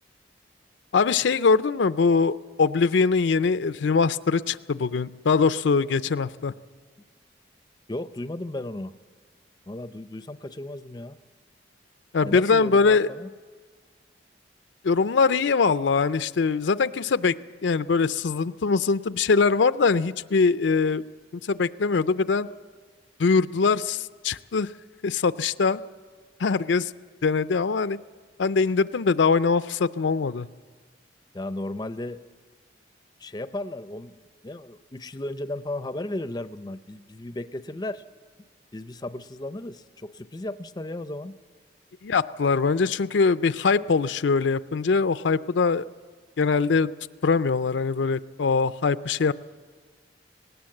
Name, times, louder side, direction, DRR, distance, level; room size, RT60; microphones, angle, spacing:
voice 1, 0.9-6.5 12.1-13.1 14.8-17.3 17.6-21.0 21.5-22.5 23.2-24.7 25.0-25.8 26.4-26.9 27.2-28.0 28.4-30.5 42.0-45.8 46.4-46.9 47.2-49.3, left 4 dB, 80° left, 14 dB, 0.5 m, -22 dB
voice 2, 7.9-9.0 9.7-11.2 12.2-13.3 31.3-32.2 33.2-38.0 38.7-41.4, left 1 dB, 20° left, 12 dB, 0.5 m, -35 dB
19.0 x 18.0 x 7.7 m, 1.5 s
head